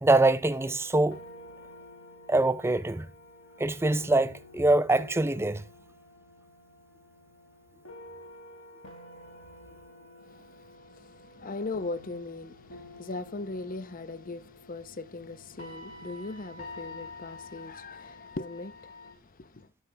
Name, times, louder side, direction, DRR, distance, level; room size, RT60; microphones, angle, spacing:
voice 1, 0.0-1.2 2.3-3.1 3.6-5.6, right 2 dB, 10° right, 0.4 m, -24 dB
sound 1, 0.5-19.1, left 2 dB, 65° left, 2.8 m, -49 dB
voice 2, 10.8-19.7, left 3 dB, 40° left, 0.8 m, -39 dB
9.7 x 7.0 x 3.4 m
head